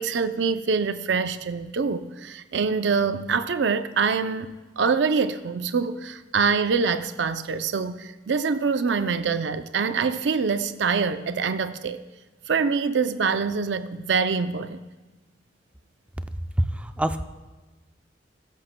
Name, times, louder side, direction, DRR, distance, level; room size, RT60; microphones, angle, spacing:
voice 1, 0.0-12.0 12.5-14.8, right 5 dB, 80° right, 0.5 m, -25 dB
voice 2, 16.6-17.2, right 1 dB, 5° right, 0.4 m, -25 dB
15.5 x 13.0 x 2.2 m
head